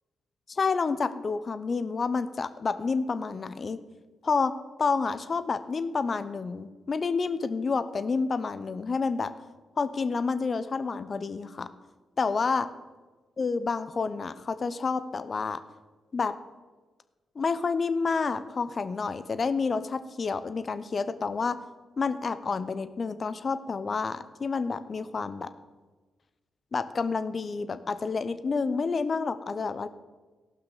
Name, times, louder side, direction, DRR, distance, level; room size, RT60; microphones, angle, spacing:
voice 1, 0.5-3.8 4.2-4.5 4.8-9.3 9.8-11.7 12.2-12.7 13.4-15.6 16.1-16.3 17.4-21.6 22.0-25.5 26.7-29.9, left 4 dB, 45° left, 13 dB, 0.8 m, -29 dB
15.5 x 5.8 x 6.8 m, 1.3 s
hypercardioid pair, 45°, 0 cm